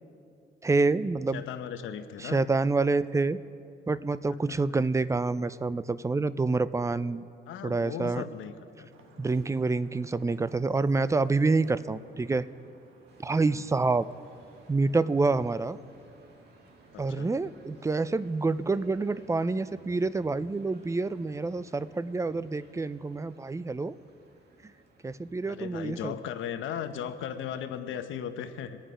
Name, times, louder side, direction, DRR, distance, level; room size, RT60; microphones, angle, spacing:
voice 1, 0.6-1.4 2.2-3.4 3.9-7.3 7.6-8.2 9.2-12.5 13.2-14.1 14.7-15.8 17.0-24.0 24.6-24.7 25.0-26.1, right 3 dB, 15° right, 16 dB, 0.4 m, -27 dB
voice 2, 1.3-2.4 4.3-4.6 7.5-8.5 8.8-9.2 13.3-13.6 16.9-17.3 25.5-28.8, left 9 dB, 80° left, 9 dB, 0.9 m, -37 dB
Vehicle horn car horn honking / Traffic noise roadway noise, 8.9-18.9, right 4 dB, 80° right, 1.4 m, -59 dB
sound 1, 13.1-26.8, right 2 dB, 55° right, 2.1 m, -58 dB
24.0 x 9.0 x 5.0 m, 2.5 s
cardioid pair, 90°, 20 cm